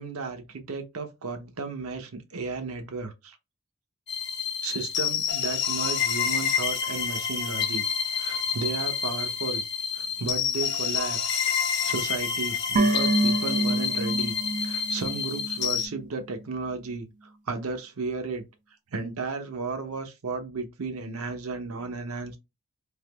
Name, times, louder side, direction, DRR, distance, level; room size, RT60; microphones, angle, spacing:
voice 1, 0.0-3.4 4.6-7.8 8.1-9.7 10.0-11.4 11.8-17.1 17.5-18.4 18.9-22.4, right 4 dB, 85° right, 0.7 m, -34 dB
sound 1, 4.1-15.9, left 7 dB, 55° left, 0.7 m, -28 dB
sound 2, 12.8-16.1 16.3-16.4, right 2 dB, 35° right, 0.3 m, -27 dB
3.5 x 2.9 x 2.2 m
head